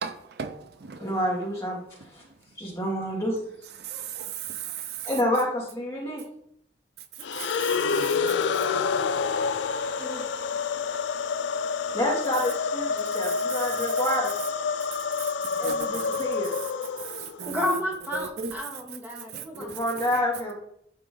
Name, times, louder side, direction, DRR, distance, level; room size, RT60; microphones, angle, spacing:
voice 1, 0.0-1.0 3.8-5.0 7.4-7.8 15.6-16.0 17.1-17.8 18.1-18.5 19.3-19.8, right 6 dB, 60° right, 0.5 m, -36 dB
voice 2, 1.0-1.8 2.1-2.2 2.6-3.4 5.0-6.2 8.7-8.8 9.9-10.7 11.9-14.3 15.6-16.5 19.5-20.5, equal, 15° left, 2.4 m, -29 dB
sound 1, 7.2-17.4, left 5 dB, 80° left, 0.4 m, -28 dB
voice 3, 17.4-19.7 20.1-20.2, left 1 dB, 10° right, 1.6 m, -31 dB
11.5 x 3.9 x 3.8 m
head